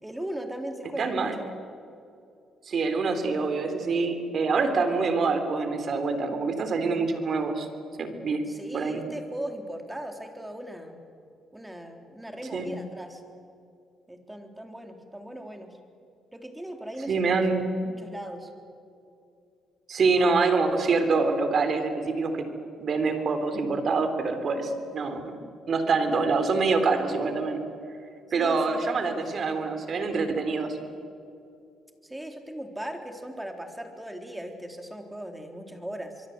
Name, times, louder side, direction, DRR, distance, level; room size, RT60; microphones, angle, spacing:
voice 1, 0.0-1.5 8.5-11.0 11.5-13.2 14.1-15.8 16.3-18.5 28.3-29.2 32.0-36.3, right 1 dB, 10° right, 4 dB, 3.8 m, -38 dB
voice 2, 1.0-1.3 2.7-7.7 8.0-8.4 8.7-9.0 12.5-12.7 17.1-17.7 19.9-22.5 22.8-25.3 25.7-27.6 28.3-30.8, right 4 dB, 55° right, 8 dB, 3.6 m, -25 dB
25.5 x 23.0 x 8.1 m, 2.6 s
cardioid pair, 90°, 0 cm